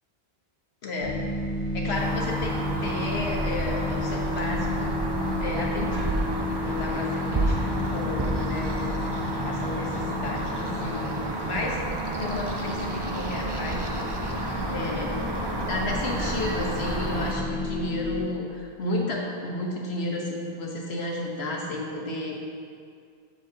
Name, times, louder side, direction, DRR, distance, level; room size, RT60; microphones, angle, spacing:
voice 1, 0.8-1.2 1.7-5.1 5.4-6.3 6.6-14.1 14.7-22.5, left 1 dB, 90° left, -1 dB, 1.3 m, -33 dB
sound 1, 1.0-18.2, left 2 dB, 70° left, 1.2 m, -32 dB
sound 2, 1.9-17.3, right 1 dB, 30° right, 0.7 m, -30 dB
8.3 x 7.3 x 2.8 m, 2.3 s
omnidirectional pair, 1.0 m